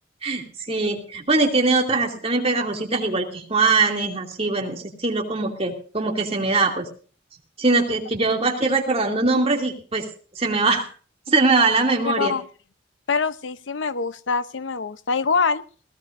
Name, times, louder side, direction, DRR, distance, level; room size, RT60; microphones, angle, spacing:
voice 1, 0.2-6.8 7.6-10.1 10.4-10.8 11.3-12.3, right 3 dB, 30° right, 2 dB, 2.6 m, -22 dB
voice 2, 12.0-12.4 13.1-15.6, left 5 dB, 75° left, 14 dB, 0.7 m, -24 dB
20.0 x 17.0 x 2.6 m, 0.40 s
head